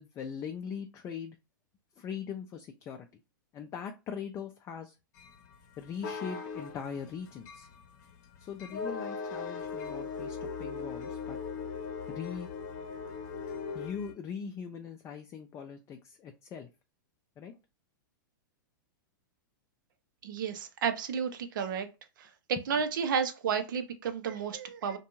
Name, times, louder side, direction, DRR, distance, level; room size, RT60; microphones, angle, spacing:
voice 1, 0.0-1.4 2.0-3.1 3.5-5.0 5.8-7.7 8.4-11.4 12.1-12.5 13.7-16.7 17.4-17.5, left 7 dB, 25° left, 0.4 m, -41 dB
sound 1, 5.2-14.1, left 5 dB, 55° left, 0.7 m, -39 dB
voice 2, 20.2-21.9 22.2-22.3 22.7-25.0, right 6 dB, 70° right, 0.6 m, -32 dB
2.6 x 2.2 x 2.9 m
hypercardioid pair, 115°, 11 cm